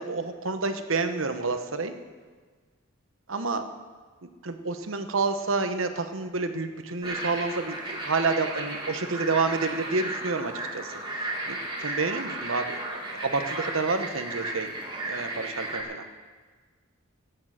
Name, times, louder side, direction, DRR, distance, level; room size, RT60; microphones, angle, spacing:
voice 1, 0.0-1.9 3.3-3.7 4.2-14.7 15.0-16.1, right 3 dB, 70° right, 8 dB, 1.1 m, -29 dB
sound 1, 7.0-15.8, right 2 dB, 25° right, 2.4 m, -34 dB
15.0 x 8.9 x 7.6 m, 1.5 s
head